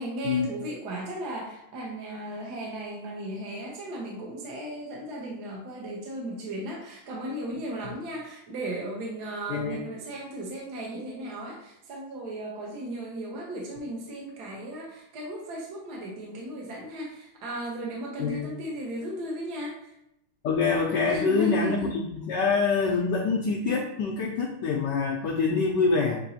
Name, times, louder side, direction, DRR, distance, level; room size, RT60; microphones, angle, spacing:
voice 1, 0.0-20.0 21.1-21.9, right 1 dB, 60° right, -2 dB, 1.1 m, -36 dB
voice 2, 20.4-26.2, left 4 dB, 80° left, 0 dB, 1.0 m, -25 dB
6.7 x 2.7 x 2.7 m, 0.82 s
omnidirectional pair, 2.4 m